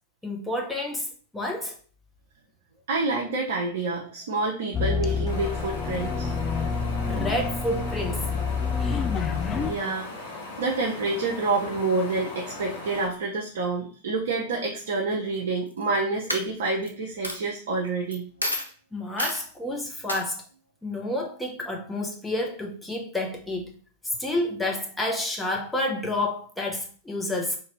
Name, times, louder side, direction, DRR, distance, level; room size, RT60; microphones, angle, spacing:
voice 1, 0.2-1.1 1.3-1.7 7.0-8.3 18.9-20.4 20.8-23.7 24.2-27.6, left 1 dB, 5° left, 0.8 m, -29 dB
voice 2, 2.9-6.3 9.6-10.1 10.4-18.2, right 3 dB, 60° right, 0.6 m, -28 dB
sound 1, 4.7-9.7, left 5 dB, 25° left, 0.4 m, -28 dB
Wind, 5.3-13.1, left 3 dB, 60° left, 1.1 m, -39 dB
Coin (dropping), 15.7-16.0 16.3-16.9 17.2-17.4 18.1-18.2 18.4-18.7 19.2-19.4 20.1-20.2, left 1 dB, 85° left, 0.5 m, -29 dB
3.0 x 2.6 x 4.0 m
figure-of-eight pair, 90°, 0 cm